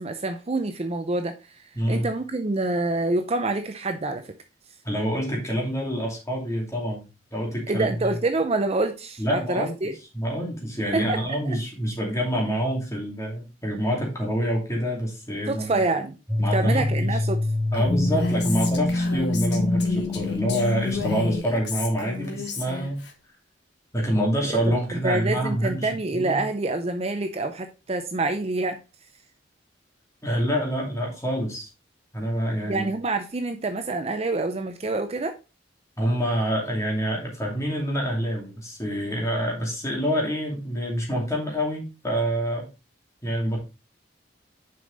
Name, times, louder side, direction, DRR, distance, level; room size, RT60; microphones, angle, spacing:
voice 1, 0.0-4.3 7.7-9.9 10.9-11.2 15.5-16.1 16.5-17.4 24.4-24.6 24.9-28.8 32.6-35.3, right 2 dB, 30° right, 0.5 m, -26 dB
voice 2, 1.7-2.1 4.8-7.0 7.3-8.2 9.2-9.7 10.1-15.8 16.4-17.2 17.7-23.0 23.9-26.4 30.2-31.7 32.1-32.9 36.0-42.7 43.2-43.6, equal, 15° left, 2.5 m, -27 dB
sound 1, 16.3-21.4, left 2 dB, ahead, 2.0 m, -25 dB
Female speech woman speaking, 17.7-23.1, left 4 dB, 60° left, 1.5 m, -34 dB
6.7 x 5.2 x 3.9 m
head